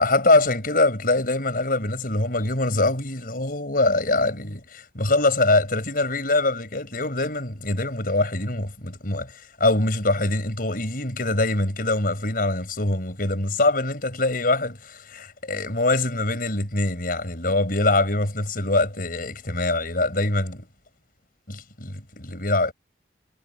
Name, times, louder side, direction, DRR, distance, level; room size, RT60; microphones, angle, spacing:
voice 1, 0.0-20.7 21.5-22.7, left 2 dB, 55° left, 6.3 m, -23 dB
head